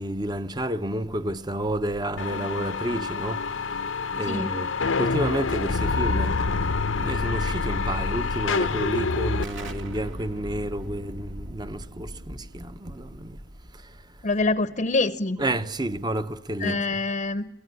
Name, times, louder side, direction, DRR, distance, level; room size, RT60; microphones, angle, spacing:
voice 1, 0.0-4.7 5.0-13.4 13.7-14.3 15.4-17.0, right 1 dB, 20° right, 0.9 m, -31 dB
sound 1, 2.2-9.4, left 4 dB, 90° left, 0.9 m, -27 dB
Explosion, 9.4-14.9, equal, 70° right, 2.5 m, -40 dB
voice 2, 14.2-15.4 16.6-17.5, left 3 dB, 40° left, 0.8 m, -25 dB
24.0 x 17.5 x 9.6 m
head